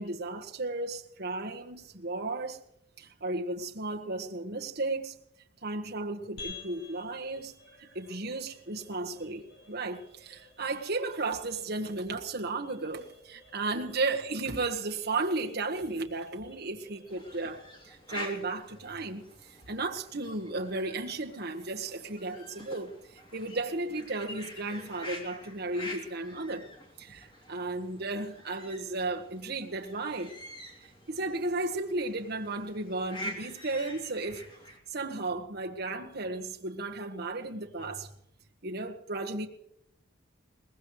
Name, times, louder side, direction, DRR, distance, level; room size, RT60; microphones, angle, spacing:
voice 1, 0.0-2.6 3.0-5.1 5.6-7.5 7.8-9.4 9.7-17.6 17.9-26.7 27.0-30.3 30.8-34.4 34.9-38.1 38.6-39.5, right 2 dB, 50° right, 1.4 m, -34 dB
sound 1, 6.4-21.0, left 4 dB, 55° left, 4.3 m, -54 dB
sound 2, 17.1-34.8, left 1 dB, 25° left, 2.9 m, -46 dB
22.5 x 20.0 x 3.2 m
head